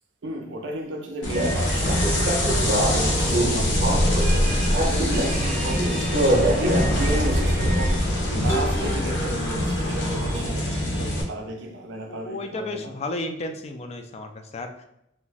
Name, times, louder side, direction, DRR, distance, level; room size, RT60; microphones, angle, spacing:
voice 1, 0.2-2.1 2.9-12.9, right 1 dB, 90° right, 0.6 m, -34 dB
sound 1, 1.2-11.2, left 1 dB, 90° left, 0.7 m, -23 dB
sound 2, 1.3-7.9, right 1 dB, 45° right, 0.6 m, -26 dB
sound 3, 8.5-10.6, right 1 dB, 15° right, 0.7 m, -36 dB
voice 2, 12.1-14.8, left 2 dB, 35° left, 0.3 m, -33 dB
2.4 x 2.2 x 3.9 m
head